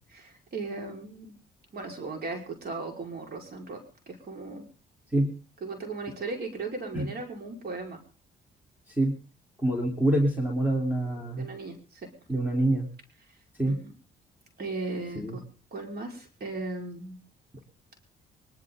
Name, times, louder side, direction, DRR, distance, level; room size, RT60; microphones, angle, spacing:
voice 1, 0.1-1.4 1.7-4.7 5.6-8.0 11.4-12.1 13.6-13.9 14.6-15.4 15.7-17.2, right 3 dB, 50° right, 2 dB, 5.0 m, -37 dB
voice 2, 9.6-11.5 12.3-12.9 13.6-13.8 15.2-15.4, right 1 dB, 10° right, 1 dB, 3.8 m, -26 dB
24.0 x 12.5 x 3.9 m, 0.37 s
cardioid pair, 90°, 20 cm